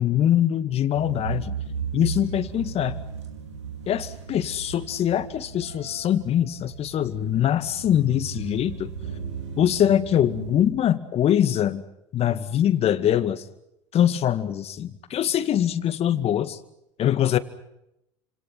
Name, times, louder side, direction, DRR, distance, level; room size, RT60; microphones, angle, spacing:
voice 1, 0.0-1.5 1.9-3.0 3.9-8.9 9.6-11.8 12.1-13.4 13.9-16.6 17.0-17.4, left 10 dB, 45° left, 13 dB, 2.1 m, -23 dB
sound 1, 0.9-10.7, right 6 dB, 80° right, 4.3 m, -36 dB
29.5 x 27.0 x 6.0 m, 0.85 s
hypercardioid pair, 75°, 15 cm